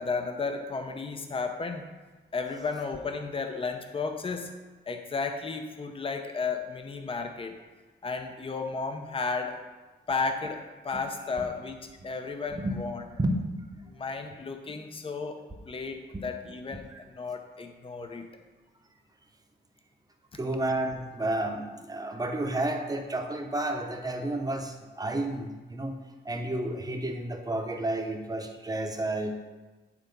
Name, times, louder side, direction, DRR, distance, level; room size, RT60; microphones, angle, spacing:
voice 1, 0.0-1.9 2.3-4.6 4.9-7.6 8.0-9.6 10.1-13.0 13.9-18.3, left 4 dB, 30° left, 6 dB, 0.7 m, -33 dB
voice 2, 13.2-13.8 20.3-26.0 26.2-29.4, right 1 dB, 20° right, 4 dB, 0.9 m, -31 dB
9.6 x 4.2 x 5.3 m, 1.2 s
wide cardioid pair, 125°, 19 cm